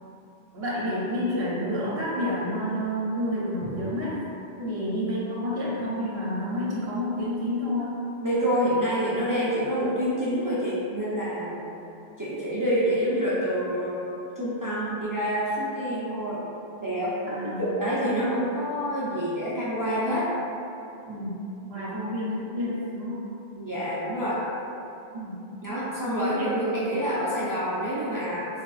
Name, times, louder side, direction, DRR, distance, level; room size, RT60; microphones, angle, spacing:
voice 1, 0.5-4.2 4.7-8.0 17.3-17.7 21.0-23.2 25.1-25.5 26.2-26.4, left 1 dB, 70° right, -7 dB, 0.9 m, -29 dB
voice 2, 8.2-11.7 12.2-14.0 14.3-16.4 16.8-20.3 21.8-21.9 23.5-24.4 25.6-28.5, equal, 35° right, -9 dB, 0.3 m, -27 dB
3.4 x 3.3 x 2.3 m, 2.8 s
omnidirectional pair, 1.1 m